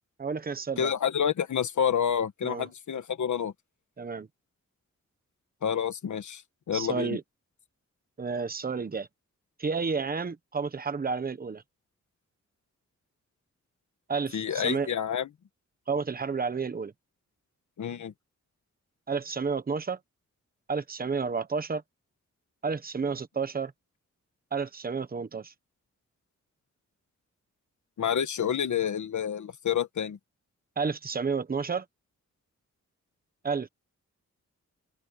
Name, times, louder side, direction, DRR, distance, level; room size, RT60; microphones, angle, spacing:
voice 1, 0.2-0.9 2.4-2.7 4.0-4.3 6.7-7.2 8.2-9.1 9.6-11.6 14.1-14.9 15.9-16.9 19.1-20.0 20.7-21.8 22.6-23.7 24.5-25.5 30.8-31.8 33.4-33.7, right 5 dB, 30° right, 1.1 m, -31 dB
voice 2, 0.8-3.5 5.6-6.4 6.7-7.2 14.3-15.3 17.8-18.1 28.0-30.2, left 8 dB, 80° left, 1.4 m, -28 dB
open air
wide cardioid pair, 180°, 29 cm